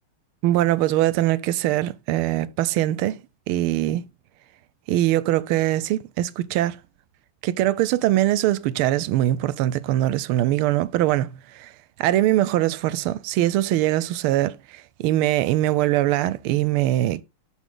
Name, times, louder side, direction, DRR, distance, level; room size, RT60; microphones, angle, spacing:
voice 1, 0.4-3.2 3.5-4.1 4.9-6.8 7.4-11.7 12.0-17.2, right 14 dB, 80° right, 1.4 m, -22 dB
11.5 x 3.8 x 3.7 m
omnidirectional pair, 2.4 m